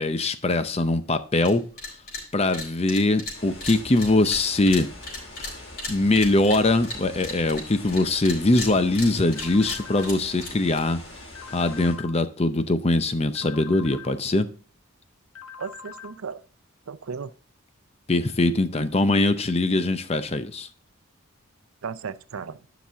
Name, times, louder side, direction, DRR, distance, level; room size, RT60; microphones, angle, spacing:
voice 1, 0.0-1.6 2.3-4.9 5.4-5.5 5.9-11.0 11.5-14.5 18.1-20.7, left 2 dB, 30° left, 0.6 m, -22 dB
sound 1, 1.4-1.5 1.8-2.2 2.5-10.8, left 2 dB, 45° left, 4.1 m, -35 dB
sound 2, 3.3-11.9, left 1 dB, 65° left, 4.0 m, -43 dB
sound 3, 9.4-10.1 11.4-12.1 13.4-14.1 15.4-16.1, left 7 dB, 85° left, 1.4 m, -42 dB
voice 2, 15.6-16.4 16.9-17.3 21.8-22.6, right 5 dB, 80° right, 0.6 m, -35 dB
10.0 x 6.0 x 3.5 m
head